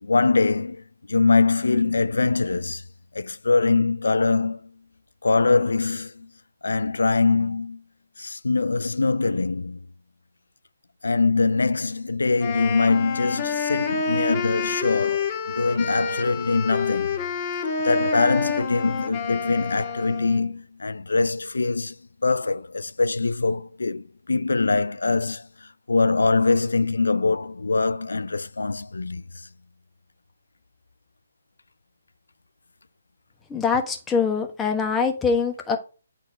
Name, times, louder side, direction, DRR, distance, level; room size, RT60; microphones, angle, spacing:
voice 1, 0.0-2.8 3.1-4.7 5.2-6.3 6.6-7.8 8.2-9.8 11.0-17.2 17.8-22.0 22.2-29.2, left 3 dB, 80° left, 0.4 m, -23 dB
Wind instrument woodwind instrument, 12.4-20.5, left 5 dB, 30° left, 1.7 m, -28 dB
voice 2, 33.5-35.8, left 5 dB, 10° left, 1.2 m, -23 dB
9.1 x 4.3 x 4.7 m
figure-of-eight pair, 145°, 0 cm